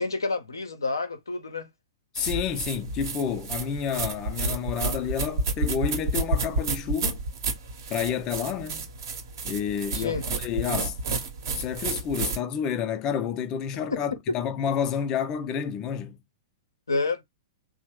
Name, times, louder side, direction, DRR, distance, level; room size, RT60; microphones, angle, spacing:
voice 1, 0.0-1.7 9.9-10.2 13.7-14.0 14.3-14.4 16.9-17.2, left 3 dB, 80° left, 0.6 m, -29 dB
voice 2, 2.1-7.2 7.9-8.9 9.4-11.0 11.5-16.2, left 8 dB, 30° left, 0.5 m, -29 dB
sound 1, 2.1-12.4, right 3 dB, 60° right, 0.8 m, -30 dB
2.9 x 2.0 x 3.1 m
figure-of-eight pair, 105°, 2 cm